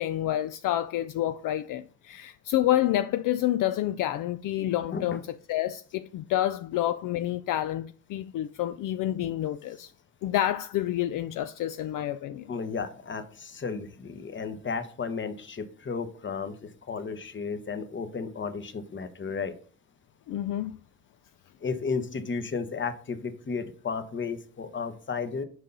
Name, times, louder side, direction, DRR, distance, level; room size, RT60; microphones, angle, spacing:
voice 1, 0.0-9.9 10.2-12.5 20.3-20.8, left 13 dB, 65° left, 0.5 m, -28 dB
voice 2, 12.5-19.6 21.6-25.4, left 5 dB, 35° left, 1.1 m, -33 dB
6.3 x 5.5 x 4.0 m
cardioid pair, 85°, 34 cm